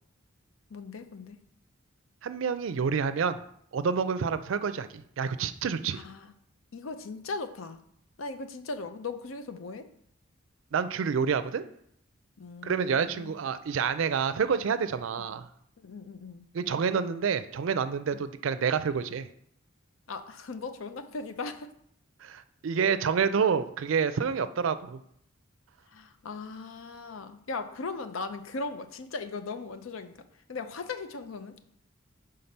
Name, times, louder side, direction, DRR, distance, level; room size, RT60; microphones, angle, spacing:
voice 1, 0.7-1.4 5.9-6.3 6.7-7.8 8.2-9.9 12.4-13.3 15.8-16.5 18.1-18.2 20.1-21.7 25.9-31.5, left 3 dB, 85° left, 9 dB, 0.6 m, -38 dB
voice 2, 2.2-3.4 3.7-6.0 10.7-11.6 12.6-15.5 16.5-19.3 22.2-25.0, right 6 dB, 70° right, 12 dB, 0.4 m, -28 dB
5.8 x 3.8 x 5.3 m, 0.70 s
head